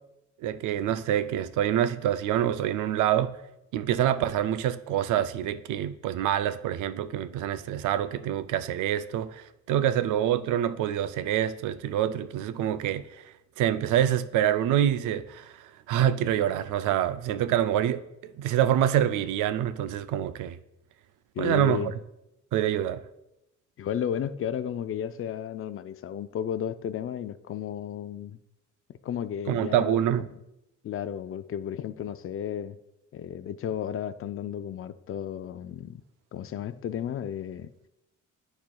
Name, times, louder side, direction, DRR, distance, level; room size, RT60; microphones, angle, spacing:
voice 1, 0.4-3.3 3.7-13.0 13.6-15.5 15.9-20.6 21.4-21.9 22.5-23.0 29.5-30.3, right 11 dB, 85° right, 0.5 m, -26 dB
voice 2, 21.4-21.9 23.8-28.4 29.0-30.3 30.8-32.8 33.1-36.0 36.3-37.7, left 9 dB, 45° left, 0.4 m, -33 dB
12.0 x 4.3 x 2.3 m
cardioid pair, 90°, 30 cm